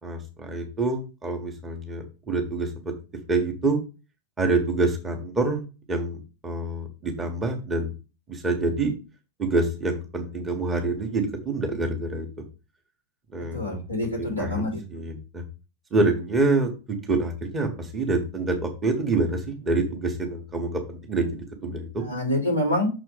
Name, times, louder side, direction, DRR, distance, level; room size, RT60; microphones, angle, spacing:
voice 1, 0.0-2.9 3.3-3.8 4.4-6.2 6.4-7.9 8.3-8.9 9.4-12.3 13.3-13.8 14.2-15.4 15.9-22.0, right 3 dB, 20° right, 3 dB, 1.5 m, -26 dB
voice 2, 13.5-14.8 22.0-22.9, left 1 dB, 85° right, -3 dB, 3.1 m, -26 dB
6.4 x 4.3 x 5.0 m, 0.32 s
figure-of-eight pair, 90°, 0 cm